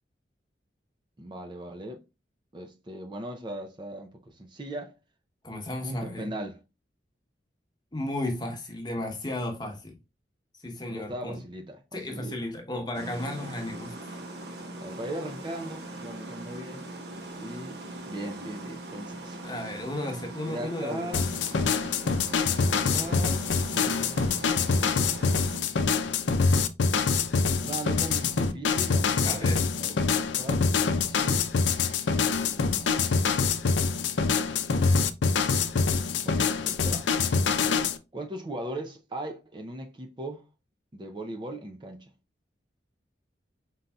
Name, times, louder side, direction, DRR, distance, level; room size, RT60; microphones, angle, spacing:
voice 1, 1.2-2.0 2.5-4.9 5.8-6.6 10.9-12.4 14.8-16.9 17.4-17.8 18.1-19.4 20.5-21.3 22.6-24.5 27.5-30.6 31.0-31.5 32.2-33.1 36.2-37.1 38.1-40.4 40.9-42.1, right 1 dB, 25° right, 0.5 m, -39 dB
voice 2, 5.4-6.3 7.9-10.0 10.6-11.4 11.9-14.2 19.4-21.1 29.2-29.7, left 1 dB, 25° left, 1.0 m, -34 dB
sound 1, 12.9-25.6, right 1 dB, 60° right, 1.0 m, -41 dB
sound 2, 21.1-38.0, left 5 dB, 80° left, 0.5 m, -25 dB
5.4 x 3.9 x 2.3 m
head